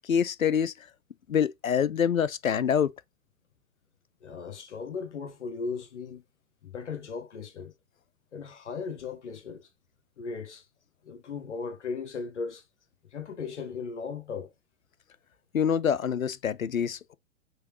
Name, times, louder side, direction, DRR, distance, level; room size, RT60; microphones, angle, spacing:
voice 1, 0.1-0.7 1.3-2.9 15.5-17.1, left 8 dB, 80° left, 0.6 m, -26 dB
voice 2, 4.2-6.2 6.6-7.7 8.3-9.7 10.2-10.7 11.0-12.6 13.1-14.5, left 5 dB, 60° left, 1.1 m, -37 dB
4.8 x 3.1 x 3.0 m
figure-of-eight pair, 115°, 40 cm